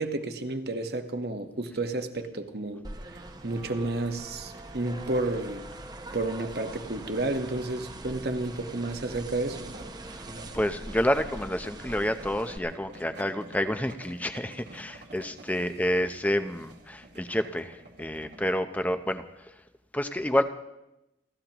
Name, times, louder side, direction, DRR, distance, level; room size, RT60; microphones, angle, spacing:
voice 1, 0.0-2.8 3.4-5.6 6.1-9.7, right 2 dB, 60° right, 6 dB, 1.2 m, -31 dB
sound 1, 2.8-12.6, right 2 dB, 25° right, 0.8 m, -42 dB
sound 2, 2.9-18.5, right 1 dB, 85° right, 2.3 m, -51 dB
voice 2, 10.5-19.5 19.9-20.4, equal, 10° left, 9 dB, 0.6 m, -29 dB
29.5 x 13.5 x 3.0 m, 0.94 s
head